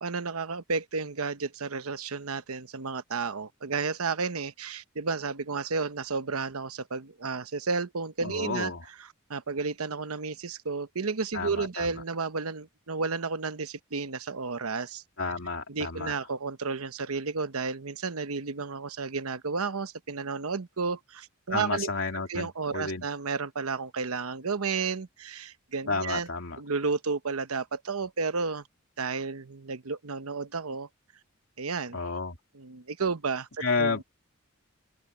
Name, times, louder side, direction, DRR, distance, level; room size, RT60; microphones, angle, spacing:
voice 1, 0.0-8.7 9.3-15.0 15.7-26.3 26.6-28.6 29.0-30.9 31.6-32.0 32.5-33.5 33.8-34.0, right 4 dB, 90° right, 1.0 m, -32 dB
voice 2, 8.2-8.8 11.3-12.0 15.2-16.1 21.5-23.0 25.9-26.6 31.9-32.4 33.6-34.0, left 4 dB, 70° left, 3.0 m, -31 dB
open air
head